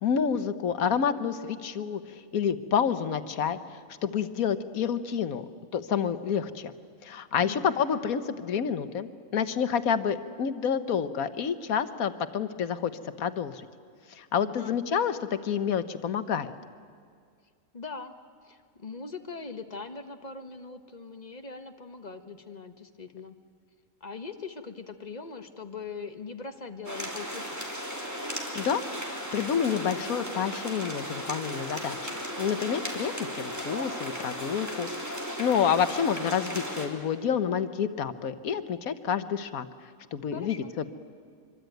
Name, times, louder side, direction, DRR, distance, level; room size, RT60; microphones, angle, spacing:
voice 1, 0.0-2.0 2.3-5.5 5.7-6.7 7.0-12.9 13.2-13.7 14.1-16.5 28.5-28.8 29.3-32.1 32.4-34.9 35.4-39.7 40.1-40.9, left 7 dB, 85° left, 12 dB, 1.5 m, -28 dB
voice 2, 7.4-7.8 14.4-14.8 17.7-18.1 18.4-23.4 24.0-27.6 40.3-40.7, left 4 dB, 30° left, 7 dB, 1.4 m, -41 dB
sound 1, 26.9-36.9, equal, 10° right, 3.1 m, -36 dB
25.0 x 24.0 x 9.2 m, 2.1 s
omnidirectional pair, 1.5 m